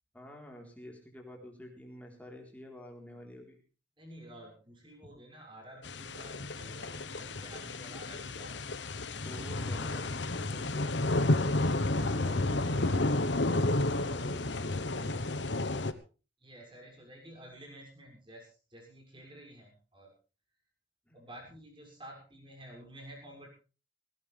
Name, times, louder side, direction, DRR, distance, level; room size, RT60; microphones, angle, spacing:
voice 1, 0.1-3.6 5.0-5.1 9.2-10.9 11.8-13.0 14.1-15.4 21.1-21.3, equal, 10° left, 1 dB, 4.1 m, -48 dB
voice 2, 4.0-8.8 12.2-13.4 15.0-15.1 16.4-20.1 21.1-23.5, right 1 dB, 25° right, 1 dB, 6.7 m, -51 dB
sound 1, 5.8-15.9, left 2 dB, 70° left, 1.2 m, -31 dB
19.0 x 17.5 x 3.5 m, 0.35 s
head